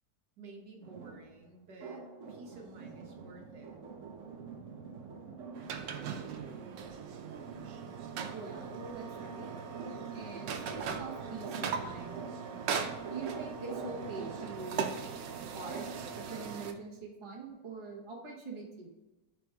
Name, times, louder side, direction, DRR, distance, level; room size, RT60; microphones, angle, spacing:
voice 1, 0.4-2.0 2.3-3.8 5.9-6.3, right 2 dB, 70° right, 1 dB, 1.6 m, -52 dB
sound 1, 0.8-16.1, right 5 dB, 55° right, 1.1 m, -46 dB
sound 2, 5.5-16.7, right 6 dB, 90° right, 1.3 m, -40 dB
voice 2, 8.3-9.5 10.1-12.2 13.1-15.0 15.5-18.9, right 4 dB, 20° right, -2 dB, 1.0 m, -44 dB
5.0 x 4.8 x 4.6 m, 1.1 s
omnidirectional pair, 1.9 m